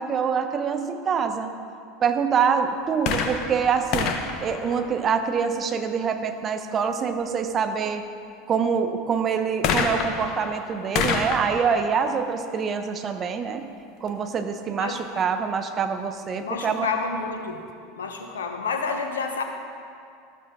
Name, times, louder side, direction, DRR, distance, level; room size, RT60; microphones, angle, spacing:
voice 1, 0.0-1.5 2.0-4.1 4.4-8.0 8.5-13.7 14.0-16.9, right 6 dB, 30° right, 7 dB, 0.9 m, -25 dB
sound 1, 3.0-5.6 9.6-13.3 14.1-14.2, left 5 dB, 50° left, 1.2 m, -29 dB
voice 2, 14.8-15.2 16.4-17.6 17.9-19.4, left 4 dB, 75° left, 4 dB, 1.1 m, -29 dB
13.5 x 13.0 x 3.7 m, 2.4 s
figure-of-eight pair, 80°, 0 cm